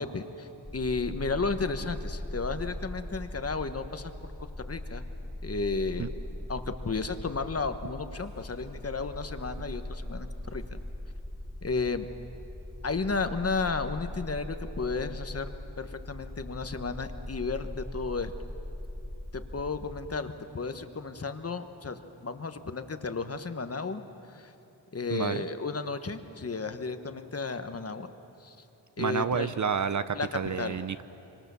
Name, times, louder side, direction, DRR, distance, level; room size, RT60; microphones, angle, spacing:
voice 1, 0.0-4.1 4.4-5.0 5.4-6.1 6.5-10.8 11.6-12.1 12.8-18.3 19.3-24.0 24.3-24.5 24.9-28.1 28.4-28.6 29.0-29.5 30.1-30.3 30.6-30.8, left 4 dB, 35° left, 9 dB, 1.2 m, -33 dB
sound 1, 0.6-20.2, left 1 dB, ahead, 2.2 m, -40 dB
voice 2, 25.1-25.5 29.0-31.0, right 6 dB, 45° right, 13 dB, 0.6 m, -30 dB
25.5 x 25.5 x 6.9 m, 2.9 s
wide cardioid pair, 120°, 42 cm